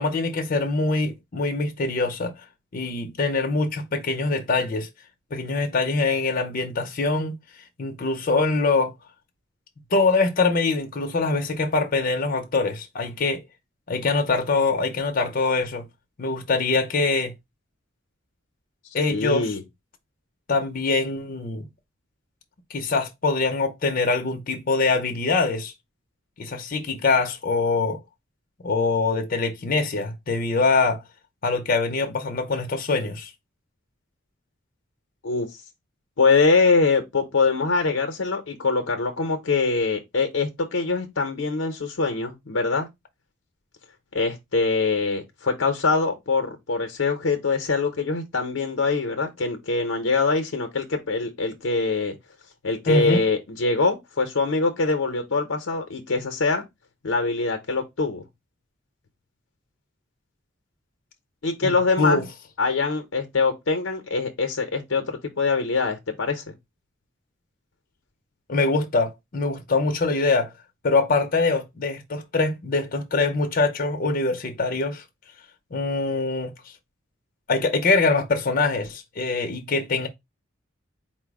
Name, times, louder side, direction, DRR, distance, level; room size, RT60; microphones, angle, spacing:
voice 1, 0.0-2.3 2.7-4.9 5.3-7.3 7.8-8.9 9.9-13.4 13.9-15.9 16.2-17.3 18.9-19.6 20.5-21.6 22.7-25.7 26.4-28.0 28.6-31.0 31.4-33.3 52.9-53.2 61.6-62.2 68.5-70.5 70.8-75.0 75.7-76.5 77.5-80.1, left 3 dB, 45° left, 0.6 m, -23 dB
voice 2, 19.1-19.6 35.2-35.5 36.2-42.9 44.1-52.2 52.6-56.6 57.0-58.2 61.4-62.3 62.6-66.5, left 4 dB, 85° left, 0.7 m, -23 dB
4.3 x 2.0 x 4.6 m
head